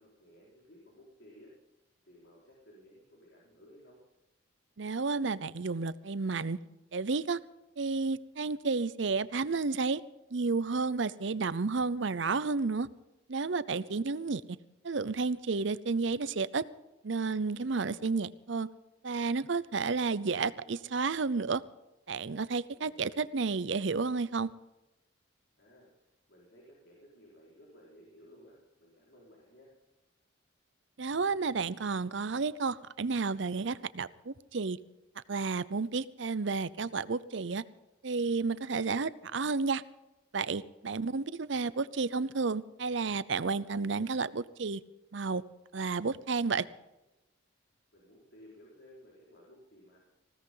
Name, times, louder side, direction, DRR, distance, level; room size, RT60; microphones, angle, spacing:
voice 1, 0.0-1.5 2.1-4.0 13.8-14.2 22.7-23.1 25.6-29.7 40.6-41.0 47.9-50.0, equal, 60° left, -4 dB, 5.0 m, -57 dB
voice 2, 4.8-6.6 6.9-7.4 7.8-10.0 10.3-12.9 13.3-14.4 14.8-16.6 17.0-18.7 19.0-21.6 22.1-24.5 31.0-34.8 35.3-37.6 38.0-39.8 40.3-44.8 45.1-45.4 45.7-46.6, right 4 dB, 65° right, 17 dB, 0.7 m, -31 dB
20.0 x 16.5 x 3.9 m, 0.97 s
head